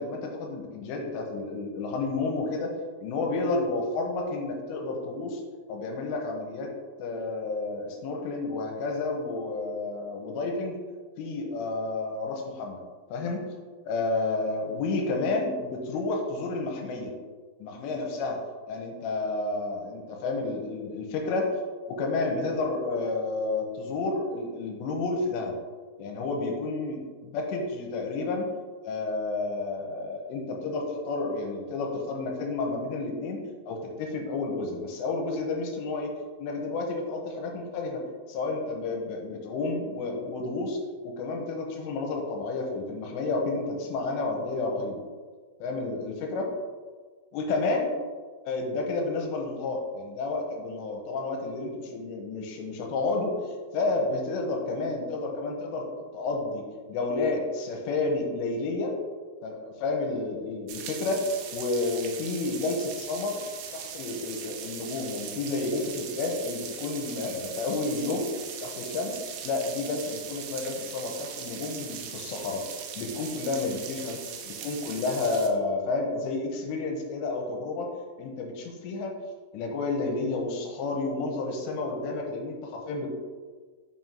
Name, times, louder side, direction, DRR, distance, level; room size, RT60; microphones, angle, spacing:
voice 1, 0.0-2.7 3.0-5.4 5.7-6.7 7.0-10.8 11.2-12.8 13.1-13.4 13.9-17.1 17.6-18.4 18.7-21.5 21.9-25.6 26.0-28.5 28.8-33.4 33.7-36.1 36.4-40.8 41.0-45.0 45.6-46.5 47.3-47.9 48.5-53.3 53.7-55.9 56.1-56.6 56.9-59.0 59.4-63.4 63.7-69.2 69.4-72.6 73.0-74.2 74.5-77.9 78.2-79.1 79.5-83.1, left 3 dB, 80° left, 2 dB, 2.8 m, -30 dB
sound 1, 60.7-75.5, right 7 dB, 85° right, 2.3 m, -40 dB
7.2 x 5.6 x 2.5 m, 1.5 s
omnidirectional pair, 5.3 m